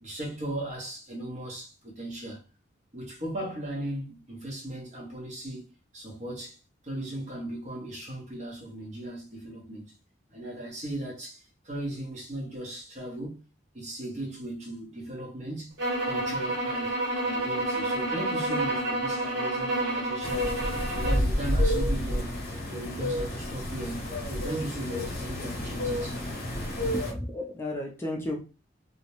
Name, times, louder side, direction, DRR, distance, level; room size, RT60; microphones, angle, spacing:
voice 1, 0.0-2.4 2.9-5.7 5.9-6.6 6.8-9.9 10.3-13.4 13.7-15.7 16.0-17.0 17.2-20.5 20.9-22.4 22.7-26.2, right 1 dB, 40° right, 0.8 m, -37 dB
sound 1, 15.8-21.3, right 1 dB, 75° right, 1.3 m, -29 dB
sound 2, 20.2-27.1, left 1 dB, 50° left, 0.8 m, -30 dB
voice 2, 26.9-28.4, left 1 dB, 15° left, 0.4 m, -33 dB
2.4 x 2.0 x 2.9 m
head